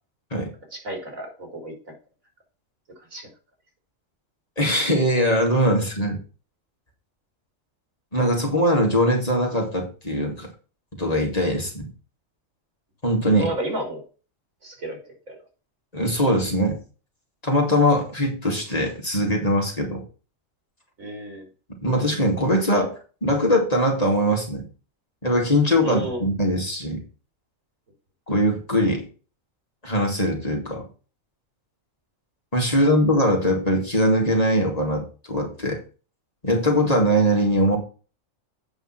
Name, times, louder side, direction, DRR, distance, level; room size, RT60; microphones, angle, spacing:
voice 1, 0.7-1.9 3.1-3.3 13.4-14.0 14.6-15.0 15.3-15.4 21.0-21.5 25.8-26.3, right 1 dB, 85° right, 2 dB, 4.0 m, -32 dB
voice 2, 4.6-6.2 8.1-10.5 10.9-11.9 13.0-13.5 15.9-16.8 17.4-20.0 21.8-24.7 25.2-27.0 28.3-29.0 29.8-30.9 32.5-35.8 36.4-37.8, equal, 30° left, 0 dB, 2.7 m, -21 dB
8.3 x 5.7 x 6.0 m, 0.35 s
omnidirectional pair, 1.4 m